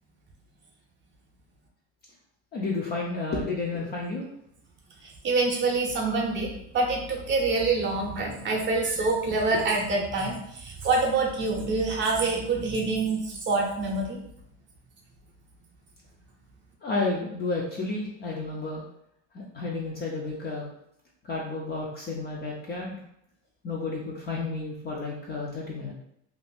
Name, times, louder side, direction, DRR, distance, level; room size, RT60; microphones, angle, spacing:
voice 1, 2.5-4.3 9.5-9.6 16.8-18.8 19.3-20.7 21.2-23.0 23.6-25.9, left 3 dB, 25° left, -2 dB, 0.4 m, -31 dB
voice 2, 5.0-14.2, right 3 dB, 30° right, 0 dB, 0.6 m, -26 dB
2.6 x 2.4 x 3.3 m, 0.74 s
supercardioid pair, 135°, 39 cm